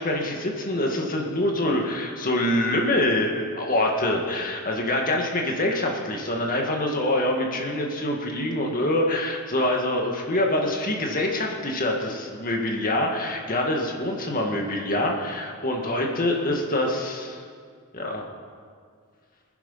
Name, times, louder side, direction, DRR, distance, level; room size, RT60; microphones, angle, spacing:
voice 1, 0.0-17.4 17.9-18.3, left 1 dB, 40° left, 1 dB, 1.9 m, -25 dB
19.5 x 10.5 x 5.6 m, 2.1 s
head